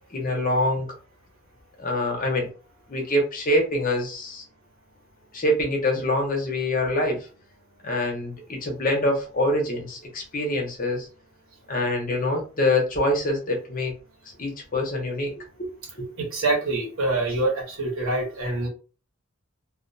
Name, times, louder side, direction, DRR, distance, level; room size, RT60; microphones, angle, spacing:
voice 1, 0.1-0.9 1.8-2.5 2.9-4.4 5.3-7.3 7.8-11.1 11.7-13.9 14.4-15.7 16.0-16.1, left 1 dB, 45° left, 1 dB, 0.8 m, -25 dB
voice 2, 16.2-18.7, right 2 dB, 80° right, -1 dB, 1.1 m, -25 dB
2.4 x 2.2 x 2.6 m, 0.35 s
head